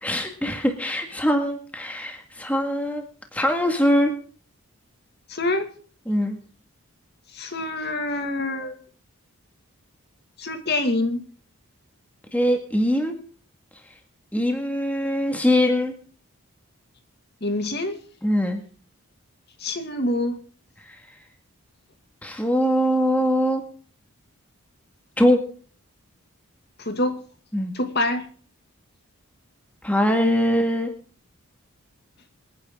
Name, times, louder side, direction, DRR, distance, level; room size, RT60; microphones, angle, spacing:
voice 1, 0.0-3.0 3.3-4.1 6.1-6.4 12.3-13.2 14.3-15.9 18.2-18.6 20.9-21.0 22.2-23.6 25.2-25.4 27.5-27.7 29.8-30.9, equal, 5° left, 4 dB, 1.9 m, -22 dB
voice 2, 5.3-5.7 7.3-8.8 10.4-11.2 17.4-18.0 19.6-20.4 26.8-27.2 27.7-28.3, left 2 dB, 45° left, 7 dB, 2.3 m, -26 dB
27.0 x 10.0 x 3.8 m, 0.43 s
head